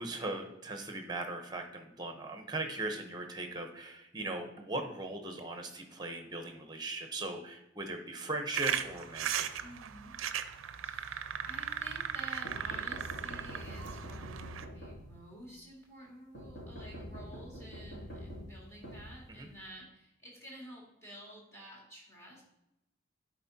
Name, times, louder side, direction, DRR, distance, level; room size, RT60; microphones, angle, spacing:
voice 1, 0.0-9.6 19.3-19.5, right 2 dB, 20° right, 5 dB, 0.9 m, -39 dB
sound 1, 8.5-14.6, right 8 dB, 85° right, 0.5 m, -37 dB
voice 2, 9.6-10.2 10.8-22.4, right 1 dB, 15° left, -4 dB, 2.2 m, -51 dB
sound 2, 12.5-15.4 16.3-19.7, equal, 60° left, 2.5 m, -46 dB
11.0 x 4.5 x 2.8 m, 0.86 s
head